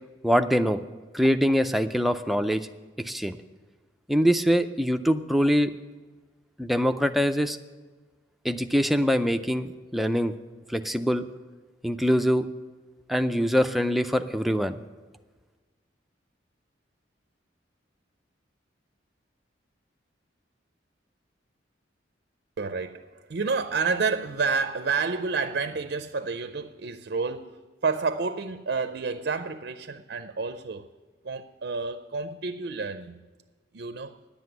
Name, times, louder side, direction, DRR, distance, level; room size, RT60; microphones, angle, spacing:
voice 1, 0.2-0.8 1.1-2.7 3.0-3.4 4.1-5.7 6.6-7.6 8.4-10.3 10.7-11.3 11.8-12.4 13.1-14.8, equal, ahead, 0.4 m, -23 dB
voice 2, 22.6-30.9 31.2-33.2 33.7-34.2, right 4 dB, 55° right, 0.5 m, -29 dB
10.5 x 7.8 x 9.4 m
head